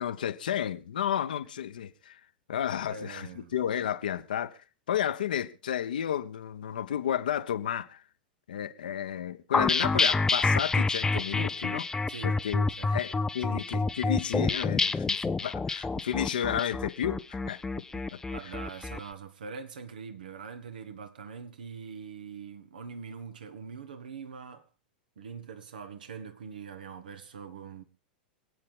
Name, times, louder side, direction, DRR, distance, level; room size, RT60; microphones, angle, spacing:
voice 1, 0.0-2.2 2.5-4.6 4.9-8.0 8.5-11.9 12.2-12.6 12.9-17.8, left 9 dB, 65° left, 1.1 m, -32 dB
voice 2, 2.9-3.5 12.1-12.4 12.8-13.1 13.4-13.7 18.3-24.7 25.1-27.8, right 6 dB, 65° right, 1.6 m, -43 dB
sound 1, 9.5-19.0, left 3 dB, 10° left, 0.6 m, -28 dB
26.5 x 8.9 x 3.5 m
figure-of-eight pair, 90°, 5 cm